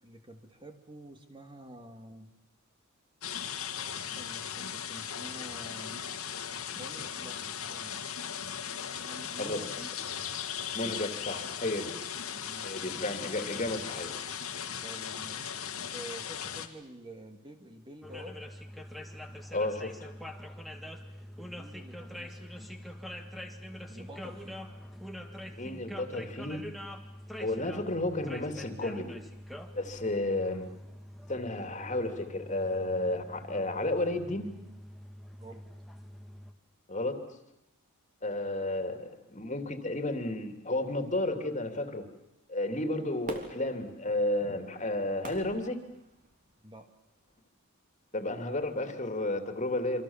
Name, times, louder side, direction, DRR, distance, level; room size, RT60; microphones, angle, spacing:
voice 1, 0.0-2.3 3.9-6.0 6.7-8.0 8.8-9.9 12.5-12.7 14.8-18.4 21.4-22.7 23.9-24.6 35.4-35.7 46.6-46.9, right 1 dB, 20° right, 5 dB, 2.3 m, -48 dB
sound 1, 3.2-16.7, left 8 dB, 85° left, 2.3 m, -38 dB
voice 2, 10.7-11.9 12.6-14.2 19.5-20.1 25.5-26.6 27.4-29.1 29.7-30.6 31.3-34.5 36.9-37.2 38.2-42.0 42.5-45.8 48.1-50.0, left 2 dB, 35° left, 7 dB, 2.8 m, -32 dB
sound 2, 18.0-36.5, equal, ahead, 2.0 m, -45 dB
Fireworks, 43.2-46.6 47.1-47.2, right 1 dB, 40° right, 3.2 m, -45 dB
27.0 x 26.0 x 7.3 m, 0.89 s
head